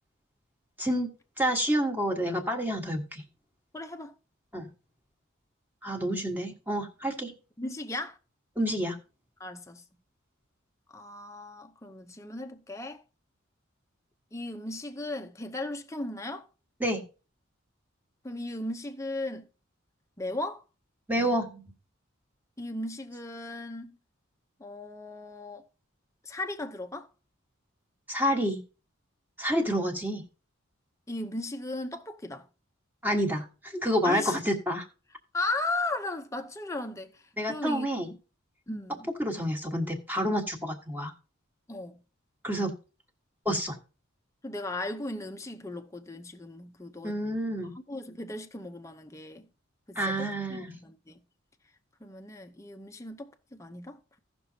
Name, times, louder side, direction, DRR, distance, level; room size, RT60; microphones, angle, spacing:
voice 1, 0.8-1.1 1.4-3.2 4.5-4.7 5.8-7.3 8.6-9.0 16.8-17.0 21.1-21.6 28.1-28.6 29.4-30.2 33.0-34.9 37.4-38.1 39.2-41.1 42.4-42.7 43.4-43.8 47.0-47.7 49.9-50.8, equal, 10° right, 1.4 m, -29 dB
voice 2, 3.7-4.1 7.6-8.2 9.4-9.8 10.9-13.0 14.3-16.5 18.2-19.5 20.2-20.6 22.6-24.0 24.6-25.7 26.2-27.1 31.1-32.5 34.0-34.4 35.3-37.1 37.5-37.9 38.7-39.1 41.7-42.0 44.4-47.2 47.9-49.5 49.9-51.2 52.0-54.2, left 2 dB, 15° left, 0.7 m, -36 dB
16.5 x 6.1 x 2.8 m
head